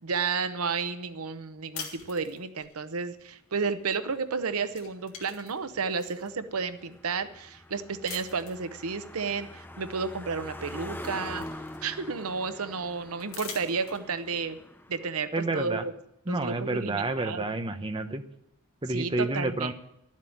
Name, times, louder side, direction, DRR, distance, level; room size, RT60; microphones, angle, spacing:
voice 1, 0.0-11.4 11.8-14.6 14.9-15.9 16.3-17.4 18.9-19.7, right 5 dB, 85° right, 11 dB, 0.8 m, -32 dB
sound 1, 1.7-2.7 4.1-4.4 4.7-6.3 6.9-7.0 8.0-8.7 10.1-10.2 10.6-12.1 13.2-14.3, left 6 dB, 65° left, 2.5 m, -44 dB
Car passing by, 3.9-15.0, left 1 dB, 10° left, 0.7 m, -44 dB
voice 2, 15.3-15.9 16.3-18.2 18.8-19.7, right 2 dB, 25° right, 7 dB, 0.9 m, -29 dB
12.0 x 7.5 x 9.3 m, 0.78 s
head